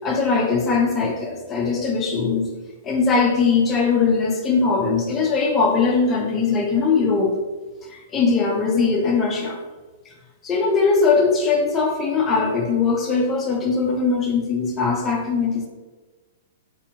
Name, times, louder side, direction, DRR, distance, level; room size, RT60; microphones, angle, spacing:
voice 1, 0.0-2.5 2.8-7.3 7.8-9.6 10.1-10.2 10.4-15.7, left 4 dB, 20° left, -1 dB, 0.5 m, -20 dB
3.3 x 2.9 x 2.8 m, 1.3 s
hypercardioid pair, 150°, 0 cm